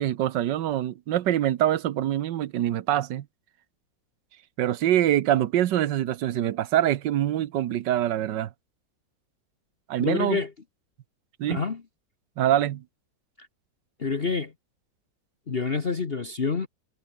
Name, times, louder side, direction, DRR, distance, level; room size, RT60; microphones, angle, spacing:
voice 1, 0.0-3.2 4.6-8.5 9.9-10.4 11.4-11.6 12.4-12.8, right 12 dB, 70° right, 1.4 m, -24 dB
voice 2, 10.0-10.5 11.5-11.8 13.4-13.5 14.0-14.5 15.5-16.7, left 4 dB, 35° left, 1.3 m, -27 dB
omnidirectional pair, 2.0 m